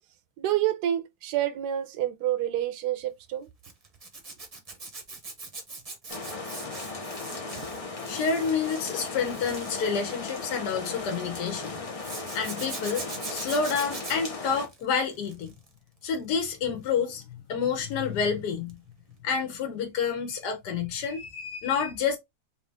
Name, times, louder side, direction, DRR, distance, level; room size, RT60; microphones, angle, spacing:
voice 1, 0.4-3.5, right 12 dB, 80° right, 1.1 m, -28 dB
Zipper (clothing), 3.6-11.1 12.0-15.7 16.0-16.4 18.7-18.8 19.1-19.2, right 3 dB, 30° right, 0.7 m, -42 dB
sound 1, 6.1-14.7, left 3 dB, 60° left, 0.3 m, -37 dB
voice 2, 8.1-11.8 12.3-15.5 16.0-17.2 17.5-18.7 19.2-22.2, left 6 dB, 75° left, 1.4 m, -29 dB
3.7 x 2.8 x 3.3 m
omnidirectional pair, 1.8 m